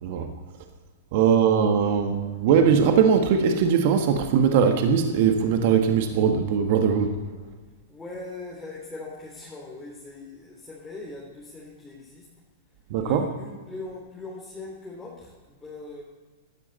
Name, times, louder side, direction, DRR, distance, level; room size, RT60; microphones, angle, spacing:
voice 1, 1.1-7.2 12.9-13.3, right 7 dB, 55° right, 5 dB, 1.6 m, -20 dB
voice 2, 7.9-12.3 13.0-16.0, left 2 dB, 10° left, -4 dB, 3.5 m, -40 dB
17.5 x 13.0 x 4.2 m, 1.3 s
hypercardioid pair, 110°, 0 cm